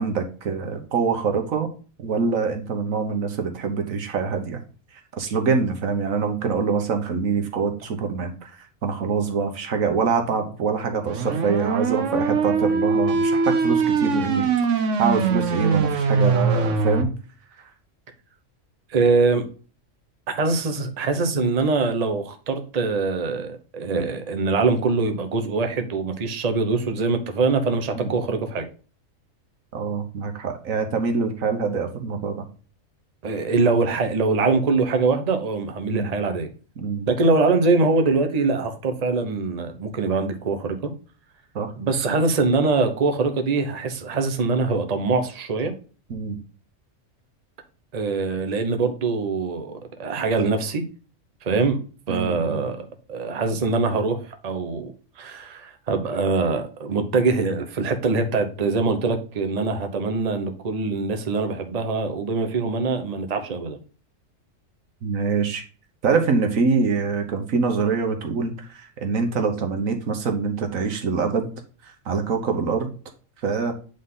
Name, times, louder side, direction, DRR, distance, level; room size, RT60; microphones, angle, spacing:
voice 1, 0.0-1.7 2.0-4.6 4.9-17.1 17.6-17.7 27.9-28.1 29.7-32.5 35.9-36.2 36.8-37.1 41.5-41.7 46.1-46.4 52.1-52.6 65.0-65.6 66.0-71.5 71.8-72.9 73.4-73.7, right 5 dB, 85° right, 5 dB, 1.5 m, -25 dB
sound 1, 11.1-17.0, right 4 dB, 70° right, 1.2 m, -22 dB
voice 2, 18.9-19.4 20.3-28.7 33.2-36.5 37.1-40.9 41.8-45.7 47.9-50.8 51.4-54.9 55.2-63.8, right 3 dB, 35° right, 6 dB, 0.9 m, -23 dB
8.6 x 4.0 x 3.7 m, 0.38 s
omnidirectional pair, 1.4 m